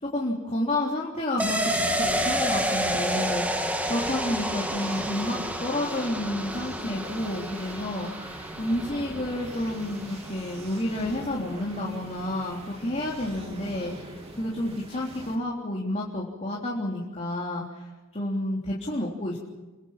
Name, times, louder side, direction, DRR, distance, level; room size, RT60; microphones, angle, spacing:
voice 1, 0.1-13.9 14.4-19.4, left 1 dB, 30° left, -4 dB, 3.5 m, -30 dB
sound 1, 1.4-10.8 11.1-11.2, equal, 5° right, 1.8 m, -30 dB
sound 2, 1.4-15.4, right 1 dB, 25° right, 3.4 m, -41 dB
29.0 x 24.5 x 5.9 m, 1.2 s
head